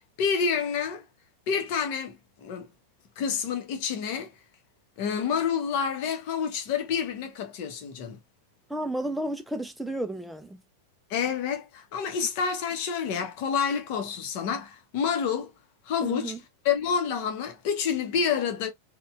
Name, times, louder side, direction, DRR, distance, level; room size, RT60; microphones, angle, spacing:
voice 1, 0.2-1.1 1.5-2.7 3.2-4.3 5.0-8.2 11.1-15.5 15.9-16.4 16.6-18.7, left 7 dB, 45° left, 0.8 m, -28 dB
voice 2, 8.7-10.6 16.0-16.4, right 1 dB, 5° right, 0.4 m, -32 dB
4.1 x 2.2 x 2.4 m
figure-of-eight pair, 90°, 0 cm